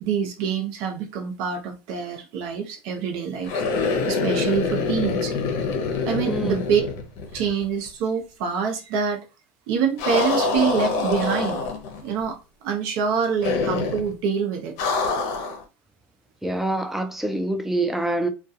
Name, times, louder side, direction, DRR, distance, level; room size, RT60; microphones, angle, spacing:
voice 1, 0.0-3.6 4.1-5.3 6.0-6.8 7.3-9.3 9.7-11.6 12.0-14.8, right 6 dB, 65° right, 0.6 m, -26 dB
sound 1, 3.4-7.6 7.9-8.0 10.0-12.0 13.4-14.1 14.8-15.6, left 4 dB, 60° left, 0.7 m, -25 dB
voice 2, 6.3-6.6 16.4-18.3, right 2 dB, 5° right, 0.4 m, -25 dB
2.3 x 2.2 x 2.7 m
supercardioid pair, 120°, 7 cm